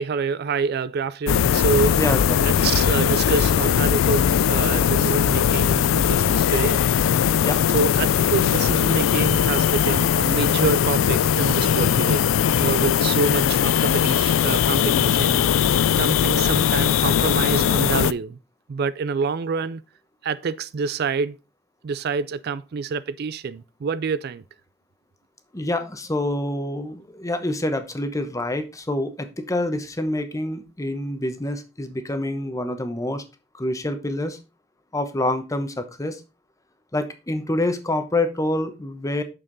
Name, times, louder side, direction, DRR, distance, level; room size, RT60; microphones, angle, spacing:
voice 1, 0.0-2.0 2.4-6.9 7.7-12.3 12.6-18.4 18.7-19.8 20.2-21.4 21.8-24.4, right 5 dB, 55° right, 0.4 m, -27 dB
sound 1, 1.3-18.1, left 9 dB, 90° left, 0.3 m, -20 dB
voice 2, 1.9-2.6 7.3-7.6 25.5-33.2 33.6-34.4 34.9-36.2 36.9-39.2, left 1 dB, 15° left, 1.0 m, -27 dB
6.6 x 6.2 x 3.9 m
head